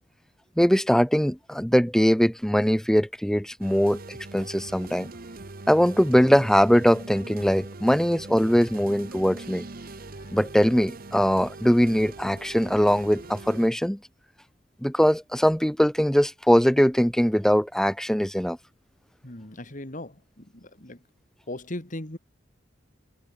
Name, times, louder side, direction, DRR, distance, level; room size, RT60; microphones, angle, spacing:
voice 1, 0.6-5.1 5.7-9.7 10.3-14.0 14.8-18.6, equal, 5° left, 1.0 m, -21 dB
sound 1, 3.6-13.7, right 2 dB, 50° right, 1.1 m, -42 dB
voice 2, 9.8-10.4 11.8-11.9 19.2-21.0 21.5-22.2, left 1 dB, 45° left, 3.1 m, -39 dB
head